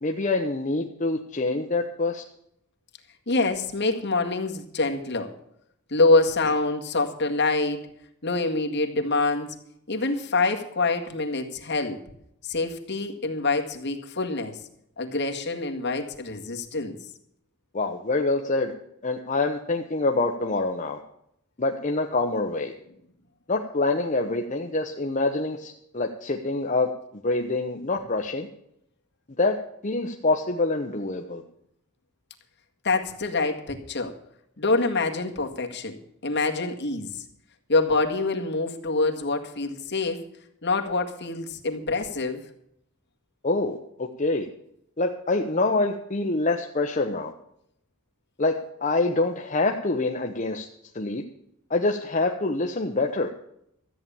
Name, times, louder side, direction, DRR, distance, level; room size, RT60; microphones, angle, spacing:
voice 1, 0.0-2.2 17.7-18.7 19.0-21.0 21.6-22.7 23.5-26.9 27.2-28.5 29.4-29.6 29.8-31.4 43.4-44.5 45.0-47.3 48.4-50.7 50.9-51.2 51.7-53.3, left 2 dB, 35° left, 3 dB, 0.9 m, -26 dB
voice 2, 3.3-5.3 5.9-7.9 8.2-9.5 9.9-12.0 12.4-14.6 15.0-17.0 32.8-34.2 34.6-36.0 36.2-37.1 37.7-40.2 40.6-42.4, left 3 dB, 55° left, 4 dB, 1.9 m, -25 dB
14.0 x 8.8 x 7.0 m, 0.74 s
head